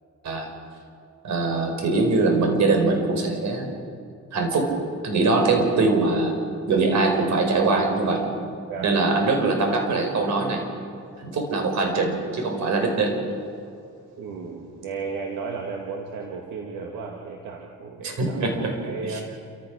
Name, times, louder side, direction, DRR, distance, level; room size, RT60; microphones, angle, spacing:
voice 1, 1.2-3.7 4.3-4.7 5.0-6.4 6.7-8.3 8.8-10.6 11.2-13.2 18.0-18.7 19.0-19.2, right 3 dB, 65° right, 3 dB, 5.3 m, -22 dB
voice 2, 8.7-9.1 14.2-19.2, right 5 dB, 85° right, 1 dB, 2.2 m, -34 dB
29.0 x 15.0 x 6.4 m, 2.4 s
cardioid pair, 95°, 30 cm